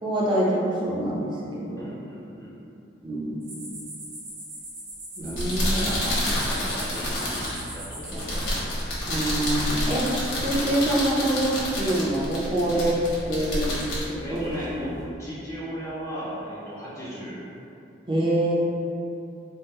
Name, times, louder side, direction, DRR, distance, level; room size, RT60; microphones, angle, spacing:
voice 1, 0.0-1.9 3.0-3.5 5.2-6.0 9.1-10.1 10.4-13.0 13.3-13.8 14.1-14.5 18.1-18.5, right 1 dB, 25° right, -6 dB, 0.6 m, -25 dB
voice 2, 1.8-2.6 5.2-8.5 14.2-17.4, equal, 15° left, -10 dB, 0.5 m, -36 dB
sound 1, 3.4-8.7, right 1 dB, 70° right, 1.0 m, -40 dB
sound 2, 5.2-15.0, left 1 dB, 75° left, 1.1 m, -29 dB
3.5 x 2.1 x 4.2 m, 2.8 s
head